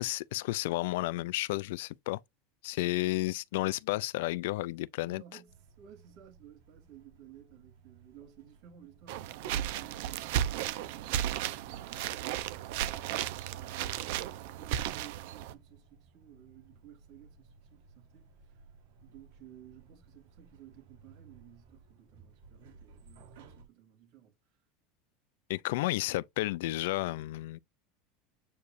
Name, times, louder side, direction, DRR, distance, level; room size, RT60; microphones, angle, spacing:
voice 1, 0.0-2.2 2.6-5.2 25.5-27.6, left 18 dB, 75° left, 0.3 m, -32 dB
voice 2, 5.1-18.6 19.0-24.3, right 11 dB, 50° right, 3.0 m, -56 dB
sound 1, 5.5-23.7, right 5 dB, 85° right, 3.4 m, -59 dB
sound 2, 9.1-15.5, right 11 dB, 65° right, 0.7 m, -34 dB
8.1 x 4.8 x 2.6 m
supercardioid pair, 170°, 0 cm